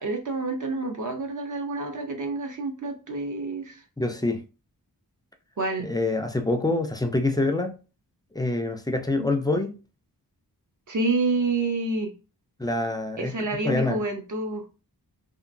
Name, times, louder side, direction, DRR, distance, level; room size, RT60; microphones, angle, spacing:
voice 1, 0.0-3.8 5.6-5.9 9.2-9.3 10.9-12.1 13.2-14.6, right 3 dB, 55° right, 0.7 m, -28 dB
voice 2, 4.0-4.4 5.8-7.7 8.3-9.8 12.6-13.4 13.6-14.0, left 2 dB, 10° left, 0.3 m, -25 dB
2.9 x 2.5 x 2.5 m
wide cardioid pair, 115°, 38 cm